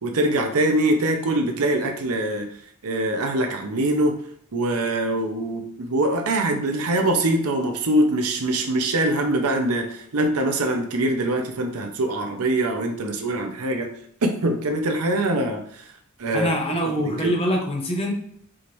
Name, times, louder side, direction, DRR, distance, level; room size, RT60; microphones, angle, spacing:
voice 1, 0.0-2.5 2.8-4.1 4.5-13.9 14.2-15.9 16.2-16.5 17.2-17.4, right 1 dB, 75° right, 4 dB, 0.7 m, -23 dB
voice 2, 16.3-18.1, equal, 25° left, 1 dB, 0.9 m, -24 dB
4.9 x 2.5 x 3.1 m, 0.65 s
head